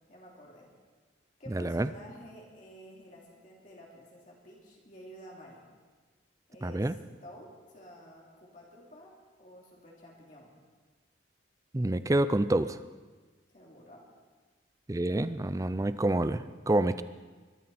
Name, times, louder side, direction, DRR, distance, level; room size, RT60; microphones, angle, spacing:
voice 1, 0.1-0.7 1.4-5.6 6.5-10.5 13.5-14.1 16.8-17.0, equal, 40° left, -3 dB, 2.8 m, -51 dB
voice 2, 1.5-1.9 6.6-6.9 11.7-12.8 14.9-17.0, right 1 dB, 15° right, 13 dB, 0.4 m, -27 dB
22.5 x 13.0 x 4.2 m, 1.4 s
head